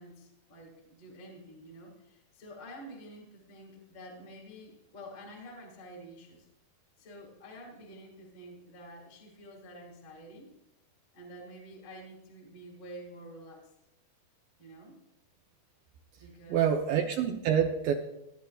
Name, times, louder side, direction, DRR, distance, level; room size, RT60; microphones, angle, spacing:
voice 1, 0.0-6.5 7.0-10.5 11.1-13.7 14.6-15.0 16.1-16.7, equal, 40° left, -1 dB, 2.5 m, -49 dB
voice 2, 16.5-17.9, right 8 dB, 75° right, 3 dB, 2.2 m, -26 dB
18.0 x 10.5 x 2.3 m, 0.85 s
omnidirectional pair, 4.6 m